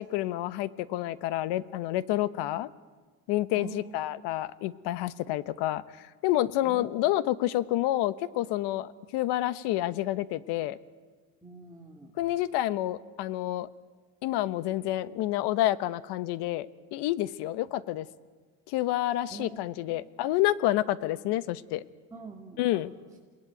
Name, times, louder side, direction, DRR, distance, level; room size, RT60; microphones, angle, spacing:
voice 1, 0.0-2.7 3.3-10.8 12.2-13.7 14.2-18.1 18.7-21.8 22.6-22.9, left 14 dB, 70° left, 16 dB, 1.1 m, -29 dB
voice 2, 3.5-3.9 6.6-6.9 11.4-12.1 19.3-19.6 19.8-20.1 22.1-22.8, right 4 dB, 10° right, -3 dB, 3.1 m, -45 dB
28.0 x 20.0 x 9.3 m, 1.4 s
cardioid pair, 125°, 43 cm